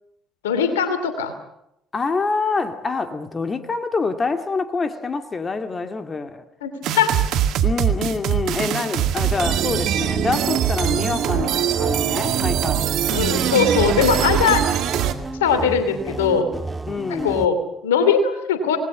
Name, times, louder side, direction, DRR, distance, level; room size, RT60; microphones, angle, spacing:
voice 1, 0.4-1.3 6.6-7.2 13.1-14.6 15.4-16.5 17.1-18.8, left 6 dB, 85° left, 10 dB, 2.8 m, -20 dB
voice 2, 1.9-6.4 7.6-12.9 16.9-17.4, left 4 dB, 30° left, 7 dB, 2.2 m, -26 dB
sound 1, 6.8-15.1, right 10 dB, 65° right, 2.0 m, -22 dB
sound 2, 9.2-17.5, right 2 dB, 15° right, 1.8 m, -32 dB
26.5 x 20.0 x 7.3 m, 0.80 s
hypercardioid pair, 55°, 0 cm